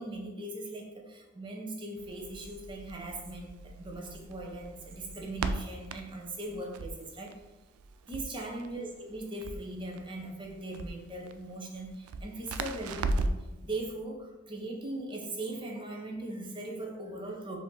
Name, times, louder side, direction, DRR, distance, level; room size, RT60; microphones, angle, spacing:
voice 1, 0.0-7.4 8.1-13.3 13.6-17.6, right 2 dB, 25° right, 0 dB, 0.6 m, -39 dB
Crackle, 2.0-13.5, right 2 dB, 90° right, 0.3 m, -38 dB
5.1 x 2.7 x 3.8 m, 1.1 s
head